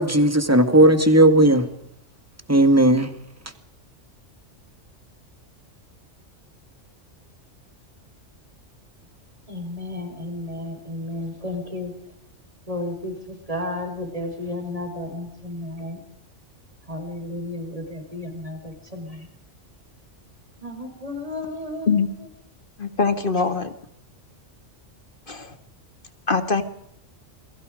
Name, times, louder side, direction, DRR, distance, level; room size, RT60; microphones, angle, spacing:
voice 1, 0.0-1.7 2.5-3.1, right 1 dB, 10° right, 9 dB, 1.9 m, -16 dB
voice 2, 9.5-11.9 12.7-13.1 13.5-16.0 16.9-19.3 20.6-21.9, left 1 dB, 30° right, 5 dB, 5.3 m, -32 dB
voice 3, 22.8-23.7 25.3-25.5 26.3-26.6, left 4 dB, 45° left, 10 dB, 1.8 m, -22 dB
29.0 x 22.0 x 5.2 m, 0.73 s
omnidirectional pair, 1.2 m